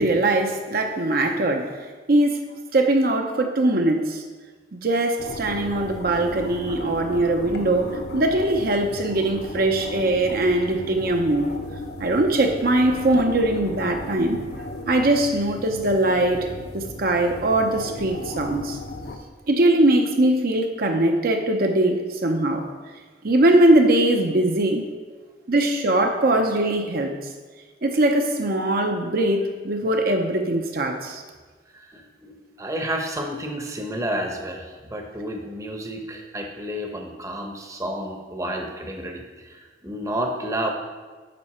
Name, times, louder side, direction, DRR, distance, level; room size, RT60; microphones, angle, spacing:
voice 1, 0.0-1.8 2.1-2.4 2.7-4.2 4.7-11.5 12.0-14.4 14.9-16.5 16.7-18.8 19.5-22.7 23.2-24.8 25.5-27.2 27.8-31.2, right 1 dB, 55° right, 4 dB, 0.7 m, -21 dB
sound 1, 5.2-19.2, left 1 dB, 60° left, 0.9 m, -36 dB
voice 2, 31.7-40.7, right 1 dB, 20° right, 3 dB, 0.8 m, -31 dB
9.4 x 5.6 x 4.3 m, 1.4 s
head